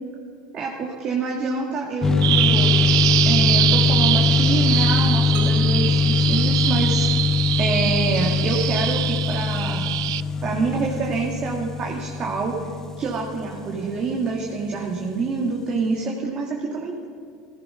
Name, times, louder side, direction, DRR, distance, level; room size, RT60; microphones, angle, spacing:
voice 1, 0.5-2.7 3.2-7.1 7.6-9.9 10.4-12.5 13.0-17.0, right 4 dB, 40° right, -1 dB, 2.0 m, -26 dB
sound 1, 2.0-14.5, left 5 dB, 20° left, 0.6 m, -22 dB
Bird vocalization bird call bird song, 2.2-10.2, right 15 dB, 80° right, 0.3 m, -24 dB
sound 2, 5.3-7.3, right 6 dB, 55° right, 1.5 m, -41 dB
16.5 x 15.0 x 5.7 m, 2.4 s
supercardioid pair, 105°, 2 cm